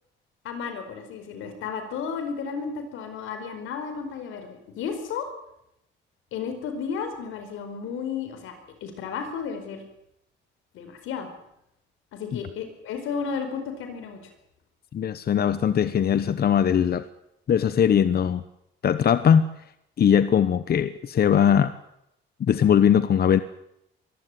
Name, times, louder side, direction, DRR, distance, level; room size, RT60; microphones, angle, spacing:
voice 1, 0.4-5.3 6.3-8.5 8.8-9.8 10.7-11.3 12.1-14.2, left 6 dB, 90° left, 7 dB, 4.9 m, -33 dB
voice 2, 14.9-17.0 17.5-18.4 18.8-19.4 20.0-21.7 22.4-23.4, left 8 dB, 50° left, 13 dB, 1.0 m, -20 dB
23.5 x 15.0 x 9.2 m, 0.80 s
cardioid pair, 90°, 20 cm